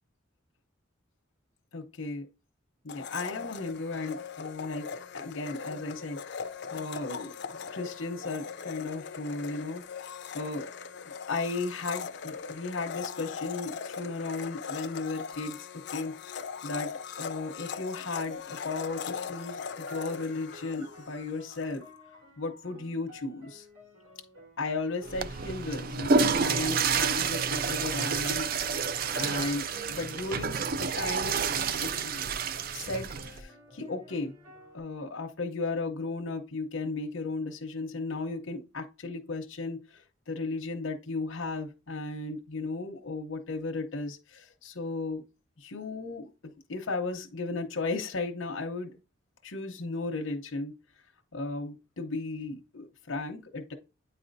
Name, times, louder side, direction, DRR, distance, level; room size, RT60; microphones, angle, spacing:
voice 1, 1.7-2.3 2.8-6.4 6.7-7.4 7.7-10.7 11.3-16.9 17.2-21.8 22.4-23.7 24.6-28.5 29.1-31.5 31.8-32.2 32.7-34.3 34.7-45.2 45.6-48.9 49.4-50.7 51.3-53.7, left 3 dB, 85° left, 0.9 m, -35 dB
Domestic sounds home sounds, 2.9-21.7, left 6 dB, 55° left, 0.5 m, -40 dB
sound 1, 18.9-30.7 31.5-34.8, equal, 85° right, 2.8 m, -53 dB
Water / Toilet flush, 25.0-33.4, right 5 dB, 45° right, 0.4 m, -29 dB
9.3 x 4.2 x 2.6 m
head